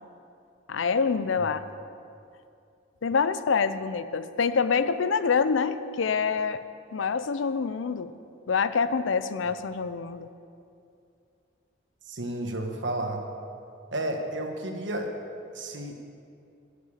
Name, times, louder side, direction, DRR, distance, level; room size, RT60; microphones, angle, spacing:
voice 1, 0.7-1.6 3.0-6.6 6.9-8.1 8.5-10.3, left 5 dB, 90° left, 13 dB, 0.5 m, -26 dB
voice 2, 12.1-13.2 13.9-15.1 15.5-15.9, right 1 dB, 75° right, 3 dB, 1.3 m, -32 dB
9.7 x 6.8 x 8.5 m, 2.5 s
head